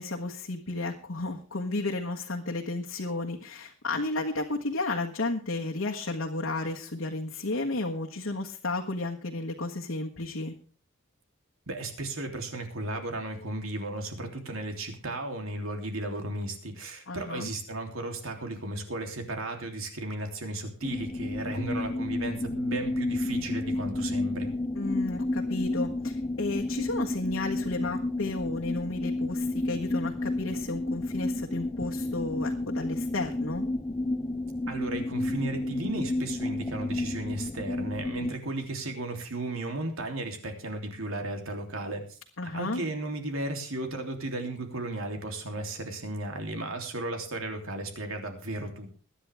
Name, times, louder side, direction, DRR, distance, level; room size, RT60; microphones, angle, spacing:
voice 1, 0.0-10.5 17.1-17.5 24.7-33.6 42.4-42.8, left 2 dB, 85° left, 0 dB, 1.5 m, -33 dB
voice 2, 11.7-24.5 34.7-42.2 42.5-48.9, right 2 dB, 90° right, 4 dB, 3.2 m, -35 dB
sound 1, 20.8-38.4, left 2 dB, 20° left, 0.5 m, -31 dB
22.0 x 10.0 x 3.5 m, 0.40 s
head